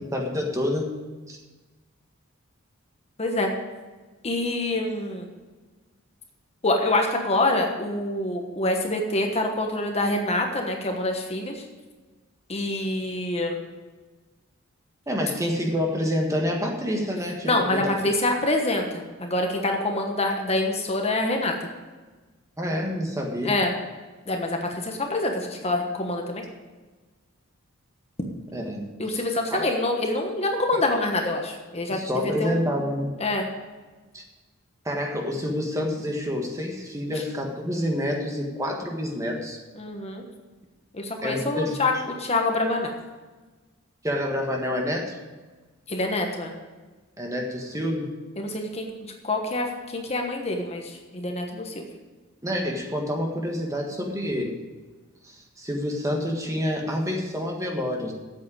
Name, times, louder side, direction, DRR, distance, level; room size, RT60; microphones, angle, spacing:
voice 1, 0.1-0.9 1.3-1.4 15.1-17.9 22.6-23.6 28.5-29.2 29.5-29.7 31.9-33.1 34.1-34.2 34.8-39.6 41.2-41.8 44.0-45.2 47.2-48.1 52.4-54.5 55.2-58.1, equal, 15° right, 1 dB, 1.6 m, -28 dB
voice 2, 3.2-3.5 4.2-5.3 6.6-11.6 12.5-13.6 17.4-21.5 23.4-23.7 24.3-26.4 29.0-32.6 33.2-33.5 39.8-40.2 40.9-42.9 45.9-46.5 48.4-51.8, left 2 dB, 30° left, 2 dB, 1.3 m, -26 dB
8.8 x 7.7 x 8.8 m, 1.3 s
head